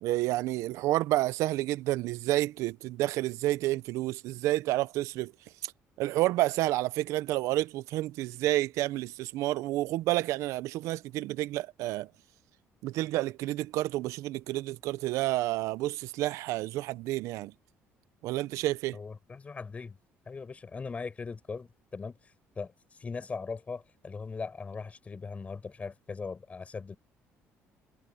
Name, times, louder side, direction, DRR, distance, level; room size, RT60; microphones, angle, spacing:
voice 1, 0.0-5.3 5.6-5.7 6.0-12.1 12.8-17.5 18.2-19.0, right 16 dB, 80° right, 0.6 m, -30 dB
voice 2, 18.9-20.0 20.3-22.1 22.6-22.7 23.0-27.0, left 4 dB, 25° left, 7.2 m, -39 dB
cardioid pair, 110°, 5 cm